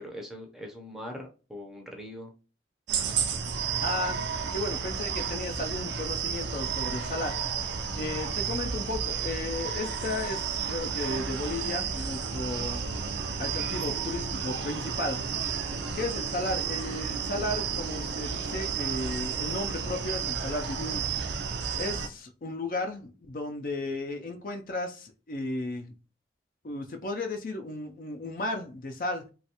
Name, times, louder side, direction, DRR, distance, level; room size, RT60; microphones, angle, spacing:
voice 1, 0.0-2.3, left 1 dB, 5° right, 2 dB, 0.5 m, -41 dB
sound 1, 2.9-22.1, right 6 dB, 85° right, 0.4 m, -32 dB
voice 2, 3.8-4.2 4.5-7.4 7.9-12.9 13.4-15.2 15.9-21.1 21.8-25.9 26.6-29.3, left 2 dB, 50° left, 5 dB, 0.4 m, -34 dB
3.1 x 2.3 x 2.8 m, 0.33 s
head